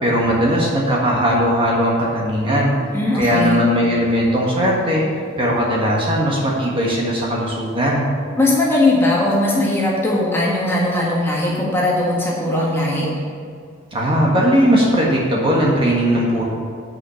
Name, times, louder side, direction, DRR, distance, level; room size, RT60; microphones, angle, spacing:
voice 1, 0.0-2.7 3.1-5.0 5.4-8.1 13.9-16.5, equal, 25° right, -4 dB, 1.5 m, -18 dB
voice 2, 2.9-3.6 8.4-13.1, left 1 dB, 10° left, -5 dB, 1.8 m, -19 dB
9.5 x 5.9 x 7.1 m, 2.2 s
head